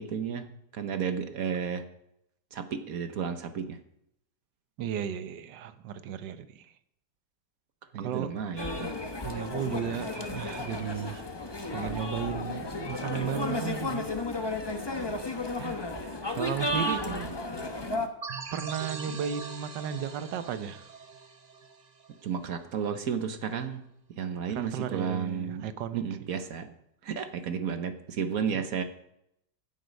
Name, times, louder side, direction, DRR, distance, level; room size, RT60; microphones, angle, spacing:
voice 1, 0.0-1.8 2.5-3.8 7.9-8.9 17.1-17.3 22.2-23.9 24.2-25.7 25.9-26.7 27.0-28.8, right 7 dB, 60° right, 9 dB, 1.2 m, -32 dB
voice 2, 4.8-6.7 8.0-8.3 9.2-11.2 11.7-14.1 15.3-17.1 18.5-20.9 24.5-26.0 28.5-28.6, right 8 dB, 85° right, 12 dB, 1.5 m, -35 dB
sound 1, 8.6-18.1, left 2 dB, 20° left, 0.7 m, -33 dB
sound 2, 18.2-22.7, right 5 dB, 40° right, 0.6 m, -42 dB
15.5 x 8.1 x 5.2 m, 0.80 s
omnidirectional pair, 1.9 m